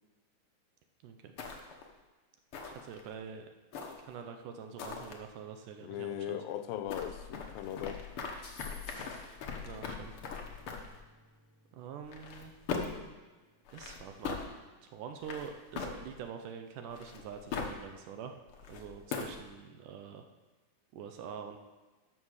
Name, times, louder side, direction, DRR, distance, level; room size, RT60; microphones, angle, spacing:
sound 1, 1.4-1.9 2.5-3.1 3.7-4.2 4.8-5.1 6.9-11.0 12.0-13.1 13.7-14.5 15.2-16.3 16.9-17.8 18.5-19.4, left 5 dB, 65° left, 1.3 m, -40 dB
voice 1, 2.7-3.5 4.0-6.4 9.6-10.1 11.7-12.5 13.7-14.4 14.8-18.3 18.7-20.2 20.9-21.6, right 7 dB, 75° right, 6 dB, 2.1 m, -45 dB
voice 2, 5.8-8.0, left 11 dB, 85° left, 10 dB, 2.5 m, -38 dB
sound 2, 8.3-9.5, left 3 dB, 40° left, 1.8 m, -50 dB
Strum, 9.8-14.4, equal, 35° right, 3.1 m, -62 dB
13.0 x 6.2 x 6.4 m, 1.3 s
omnidirectional pair, 4.1 m